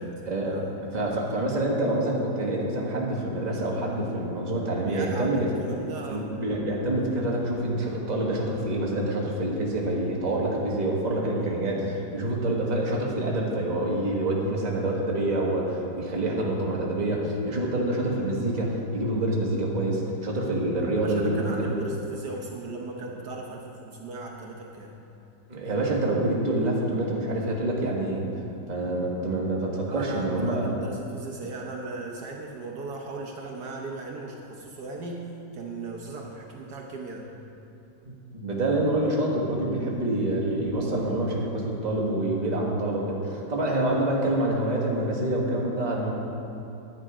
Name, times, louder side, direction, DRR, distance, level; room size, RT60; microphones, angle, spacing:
voice 1, 0.9-5.5 6.1-21.9 25.5-28.3 28.7-30.7 38.3-46.1, right 1 dB, 25° right, -3 dB, 1.5 m, -27 dB
voice 2, 4.8-6.3 11.3-11.6 21.0-24.9 29.9-35.3 35.5-37.3 39.8-39.9 42.3-42.6 43.5-43.7, right 3 dB, 65° right, 0 dB, 1.5 m, -38 dB
10.5 x 9.9 x 4.9 m, 2.9 s
omnidirectional pair, 1.9 m